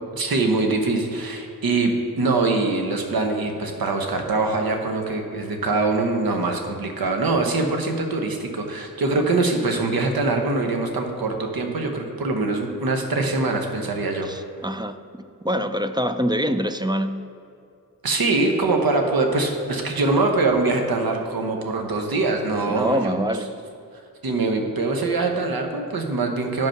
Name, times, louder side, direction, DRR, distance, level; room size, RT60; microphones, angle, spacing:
voice 1, 0.1-14.3 18.0-23.1 24.2-26.7, right 3 dB, 75° right, 3 dB, 1.2 m, -23 dB
voice 2, 14.2-15.0 15.4-17.3 22.7-23.5, equal, 15° right, 10 dB, 0.3 m, -25 dB
9.1 x 5.4 x 5.8 m, 2.5 s
wide cardioid pair, 80°, 37 cm